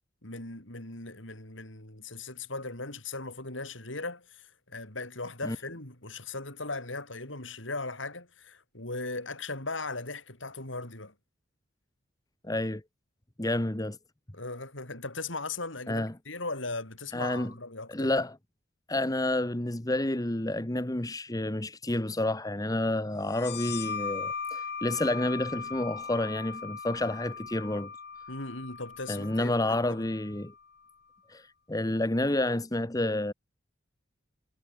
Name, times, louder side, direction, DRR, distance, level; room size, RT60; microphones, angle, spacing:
voice 1, 0.2-11.1 14.3-18.1 28.3-30.0, left 3 dB, 75° left, 6.7 m, -38 dB
voice 2, 12.4-12.8 13.4-14.0 15.9-16.1 17.1-17.5 17.9-18.4 18.9-27.9 29.1-30.5 31.3-33.3, left 1 dB, 20° left, 1.3 m, -29 dB
sound 1, 23.3-30.6, left 6 dB, 60° left, 5.5 m, -39 dB
head